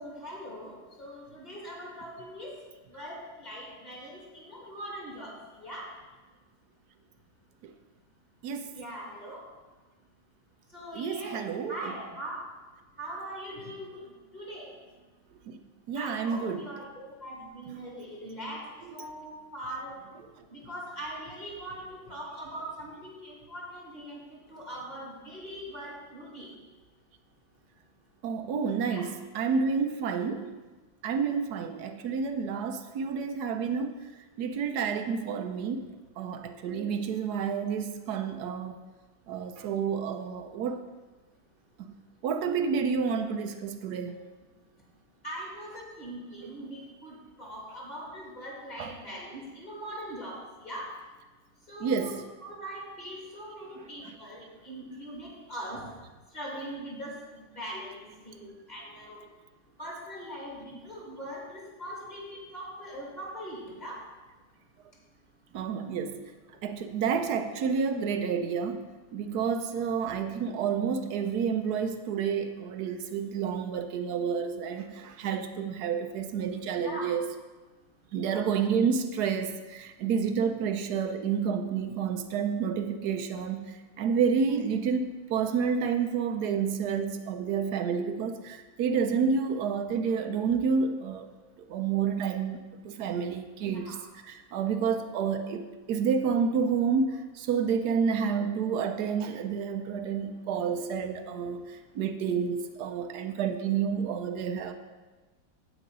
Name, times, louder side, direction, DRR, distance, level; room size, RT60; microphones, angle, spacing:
voice 1, 0.0-2.5 2.9-5.9 8.7-9.4 10.7-11.4 11.7-12.4 13.0-14.0 14.3-14.7 15.9-18.6 18.9-20.0 20.5-26.5 28.9-29.0 36.7-37.1 45.2-50.9 51.7-52.1 52.4-55.8 56.3-59.2 59.8-64.0 76.8-77.1 78.2-78.4 93.6-94.0, right 1 dB, 20° left, -5 dB, 2.7 m, -41 dB
voice 2, 10.9-12.0 15.5-15.6 15.9-16.7 18.8-18.9 28.2-30.5 31.0-33.9 34.4-35.8 36.2-38.8 39.3-40.8 42.2-44.2 48.8-48.9 51.8-52.2 53.8-53.9 65.5-66.2 66.6-68.8 69.1-77.3 78.1-83.7 84.0-91.3 91.7-94.0 94.2-104.7, right 6 dB, 70° right, 8 dB, 1.0 m, -29 dB
9.1 x 8.4 x 4.0 m, 1.2 s
omnidirectional pair, 2.1 m